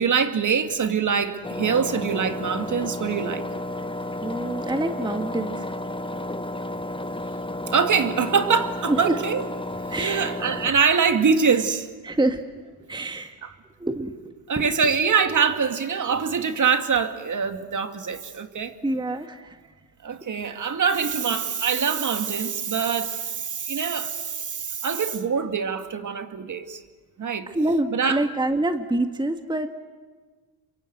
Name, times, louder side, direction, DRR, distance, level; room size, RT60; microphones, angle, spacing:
voice 1, 0.0-3.5 7.7-9.4 10.0-11.9 14.5-18.7 20.0-26.8 27.2-27.5 27.9-28.3, right 6 dB, 40° right, 2.2 m, -24 dB
Engine, 1.4-10.7, left 1 dB, 10° left, 1.1 m, -32 dB
voice 2, 4.2-6.1 8.9-9.2 9.9-10.2 12.0-13.4 13.8-14.7 18.8-19.7 27.5-29.7, right 1 dB, 10° right, 1.6 m, -27 dB
28.0 x 23.5 x 8.0 m
supercardioid pair, 80°, 47 cm